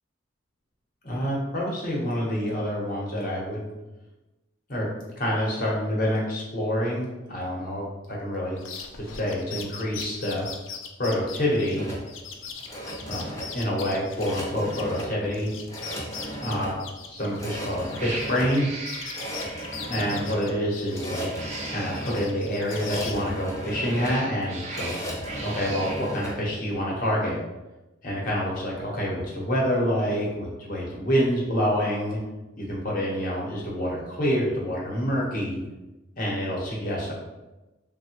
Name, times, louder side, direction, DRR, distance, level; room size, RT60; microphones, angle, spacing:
voice 1, 1.0-3.7 4.7-4.9 5.2-8.6 9.0-10.4 11.0-11.9 13.1-13.2 13.5-15.5 16.4-16.7 17.0-18.7 19.8-21.3 21.7-24.9 25.4-27.4 28.0-32.2 32.6-35.6 36.2-37.1, equal, 45° left, -4 dB, 0.8 m, -27 dB
sound 1, 8.6-15.0 15.3-18.6 18.9-21.2 21.5-23.2, left 6 dB, 80° left, 0.4 m, -40 dB
sound 2, 11.7-26.4, equal, 15° left, 0.6 m, -36 dB
Cat, 17.2-17.5 17.9-20.0 21.1-22.2 23.5-26.1, right 3 dB, 35° right, 0.4 m, -39 dB
3.4 x 2.1 x 2.8 m, 1.1 s
head